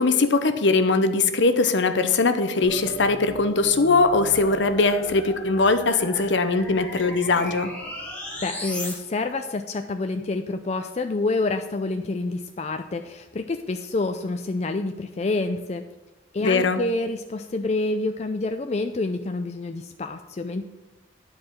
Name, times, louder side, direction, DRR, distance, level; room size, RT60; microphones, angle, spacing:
voice 1, 0.0-7.7 16.4-16.8, left 3 dB, 65° left, 9 dB, 0.8 m, -21 dB
sound 1, 2.6-8.9, left 1 dB, 5° left, 1.8 m, -37 dB
voice 2, 8.4-15.8 16.3-20.6, left 2 dB, 35° left, 6 dB, 0.4 m, -28 dB
10.5 x 4.8 x 7.4 m, 1.1 s
head